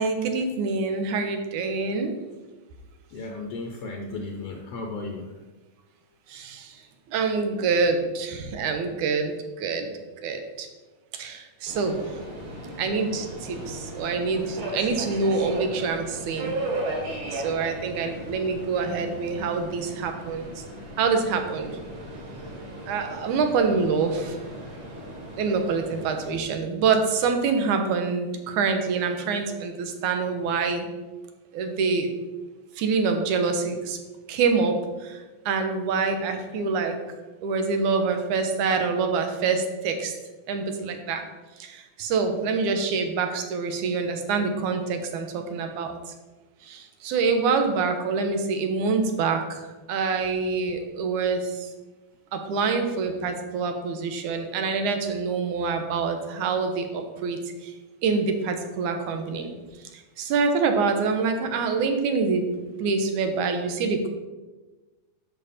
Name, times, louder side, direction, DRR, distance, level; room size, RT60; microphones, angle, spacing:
voice 1, 0.0-2.1 6.3-6.8 7.1-9.9 10.2-10.7 11.1-12.0 12.8-16.6 17.3-20.6 21.0-21.7 22.9-24.4 25.4-30.9 31.5-32.2 32.8-34.0 34.3-37.0 37.4-40.1 40.5-41.3 41.6-46.1 46.6-51.7 52.3-57.8 58.0-59.5 59.9-62.5 62.8-64.1, right 4 dB, 90° right, 5 dB, 2.5 m, -26 dB
voice 2, 3.1-5.2, left 3 dB, 70° left, 2 dB, 1.7 m, -34 dB
Subway metro underground, 11.7-26.3, right 1 dB, 60° right, 4.6 m, -36 dB
10.5 x 6.6 x 4.2 m, 1.2 s
omnidirectional pair, 3.4 m